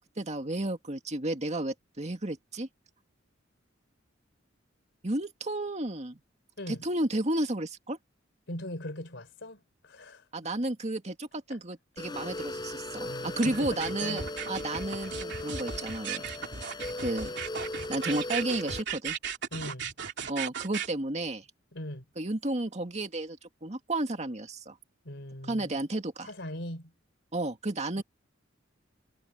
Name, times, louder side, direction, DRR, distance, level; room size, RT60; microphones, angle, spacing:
voice 1, 0.2-2.7 5.0-6.2 6.7-8.0 10.3-14.2 14.5-16.3 17.0-17.4 17.9-19.2 20.3-21.5 22.2-24.8 25.5-26.3 27.3-28.0, right 1 dB, 35° right, 2.2 m, -32 dB
voice 2, 8.5-10.2 11.5-11.6 13.0-14.2 19.5-19.9 21.7-22.1 25.0-25.8 26.2-26.9 27.9-28.0, left 1 dB, 65° left, 4.0 m, -40 dB
sound 1, 12.0-18.8, left 1 dB, 20° left, 5.9 m, -38 dB
sound 2, 13.4-20.9, right 7 dB, 65° right, 2.9 m, -36 dB
head